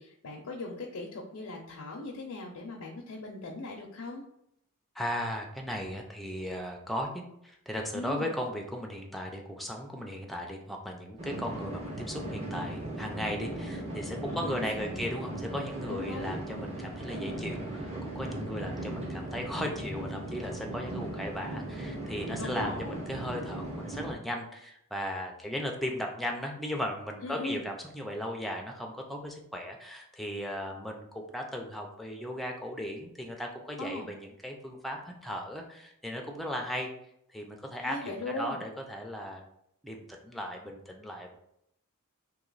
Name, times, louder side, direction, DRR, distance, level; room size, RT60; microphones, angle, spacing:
voice 1, 0.0-4.2 7.9-8.3 14.3-15.0 15.9-16.4 22.4-23.0 27.2-27.6 33.8-34.1 37.8-38.6, left 2 dB, 75° left, -2 dB, 0.6 m, -39 dB
voice 2, 4.9-36.9 37.3-39.4 39.8-41.3, equal, ahead, 1 dB, 0.5 m, -37 dB
sound 1, 11.2-24.1, right 1 dB, 30° right, 0.8 m, -38 dB
3.0 x 2.8 x 3.9 m, 0.75 s
head